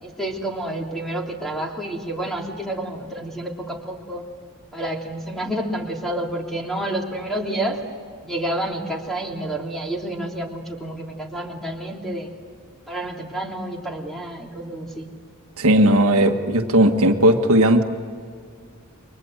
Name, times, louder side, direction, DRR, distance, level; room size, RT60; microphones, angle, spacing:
voice 1, 0.0-4.2 4.7-7.8 8.2-12.3 12.9-15.1, right 1 dB, ahead, 0 dB, 3.2 m, -29 dB
voice 2, 15.6-17.8, right 1 dB, 70° right, 4 dB, 1.6 m, -16 dB
29.5 x 24.0 x 8.0 m, 2.2 s
head